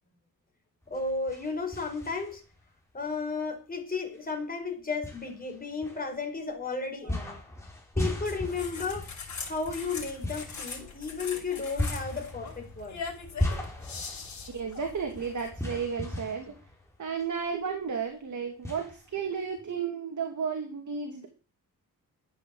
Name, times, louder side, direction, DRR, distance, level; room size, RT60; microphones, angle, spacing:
sound 1, 0.8-2.6 3.1-3.2 4.1-4.2 5.0-6.5 7.1-17.5 17.8-17.9 18.6-19.7, left 1 dB, 5° left, 5.1 m, -37 dB
voice 1, 0.9-2.4 2.9-7.4 8.0-9.1 9.4-13.0, left 4 dB, 25° left, 2 dB, 4.9 m, -33 dB
sound 2, 8.2-15.5, left 5 dB, 50° left, 5.9 m, -41 dB
voice 2, 14.5-16.5 17.0-21.3, right 6 dB, 50° right, 4 dB, 2.7 m, -33 dB
12.5 x 9.1 x 7.9 m, 0.36 s
wide cardioid pair, 135°, 37 cm